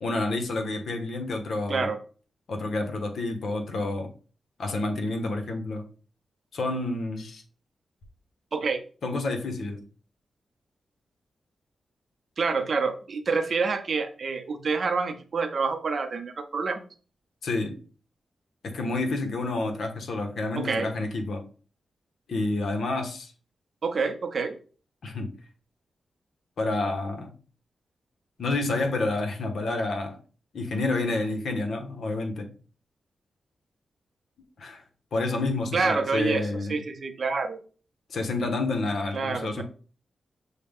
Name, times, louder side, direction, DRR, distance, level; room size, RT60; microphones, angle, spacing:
voice 1, 0.0-1.9 2.5-4.1 4.6-5.8 6.5-7.4 9.0-9.9 17.4-17.8 18.6-21.4 22.3-23.3 25.0-25.3 26.6-27.3 28.4-30.2 30.5-32.5 34.6-34.8 35.1-36.8 38.1-39.6, left 2 dB, 75° left, 4 dB, 0.9 m, -29 dB
voice 2, 8.5-8.8 12.4-16.8 20.6-20.9 23.8-24.6 35.7-37.6 39.1-39.6, right 4 dB, 55° right, 7 dB, 0.6 m, -27 dB
6.4 x 2.1 x 3.5 m, 0.38 s
wide cardioid pair, 100°, 0 cm